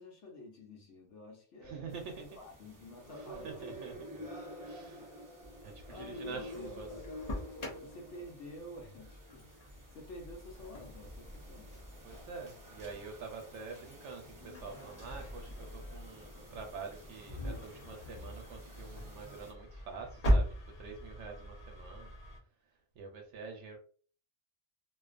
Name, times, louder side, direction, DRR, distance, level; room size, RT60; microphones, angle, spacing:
voice 1, 0.0-3.8 4.1-4.3 5.0-5.3 5.9-7.1 7.8-9.6 9.9-11.7, left 1 dB, 75° left, 1.0 m, -50 dB
voice 2, 1.6-2.2 3.2-3.9 4.6-5.1 5.6-7.0 12.0-22.1 23.0-23.8, right 5 dB, 75° right, 0.9 m, -46 dB
sound 1, 1.9-19.5, equal, 25° right, 0.4 m, -50 dB
Engine starting, 5.4-22.4, equal, 40° left, 0.6 m, -40 dB
2.5 x 2.2 x 2.4 m
omnidirectional pair, 1.2 m